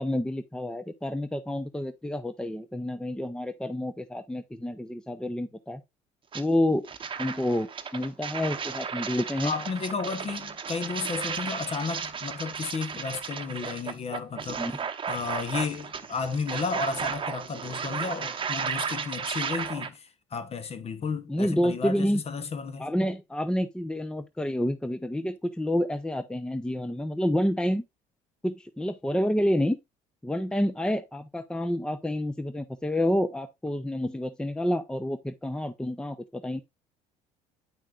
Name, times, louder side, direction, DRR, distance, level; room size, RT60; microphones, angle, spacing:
voice 1, 0.0-5.8 6.3-6.9 7.2-9.5 14.6-14.7 21.3-22.2 22.8-27.8 28.4-29.8 30.2-36.6, left 1 dB, 5° left, 0.7 m, -28 dB
sound 1, 6.3-6.4 6.8-19.9, right 6 dB, 35° right, 0.9 m, -34 dB
voice 2, 9.4-14.7 15.1-22.9, left 5 dB, 40° left, 1.1 m, -33 dB
9.0 x 5.7 x 2.4 m
supercardioid pair, 80°, 16 cm